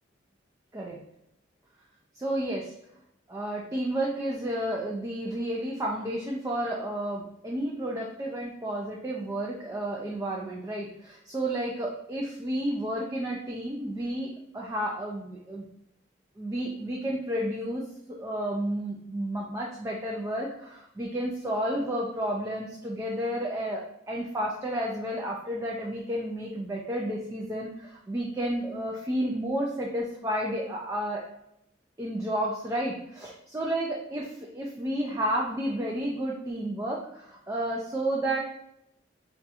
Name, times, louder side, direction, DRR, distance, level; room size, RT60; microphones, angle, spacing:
voice 1, 2.2-2.7 3.3-15.7 16.4-17.8 18.1-31.3 32.0-34.3 34.5-38.4, right 1 dB, 15° right, -2 dB, 0.3 m, -31 dB
2.6 x 2.3 x 4.0 m, 0.78 s
head